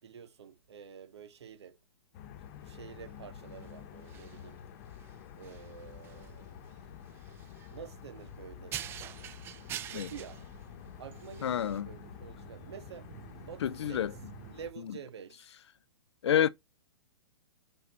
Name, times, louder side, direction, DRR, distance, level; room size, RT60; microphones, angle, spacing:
voice 1, 0.0-1.8 2.6-4.6 5.4-6.6 7.7-8.8 9.9-10.6 11.0-14.1 14.5-15.5, right 8 dB, 80° right, 2.0 m, -48 dB
sound 1, 2.1-14.7, left 9 dB, 40° left, 1.1 m, -49 dB
sound 2, 2.4-11.8, right 11 dB, 15° right, 0.5 m, -47 dB
sound 3, 5.8-14.5, right 9 dB, 40° right, 1.0 m, -55 dB
voice 2, 11.4-11.9 13.6-14.1 16.2-16.5, left 10 dB, 85° left, 0.6 m, -28 dB
6.1 x 5.6 x 3.1 m
hypercardioid pair, 155°, 14 cm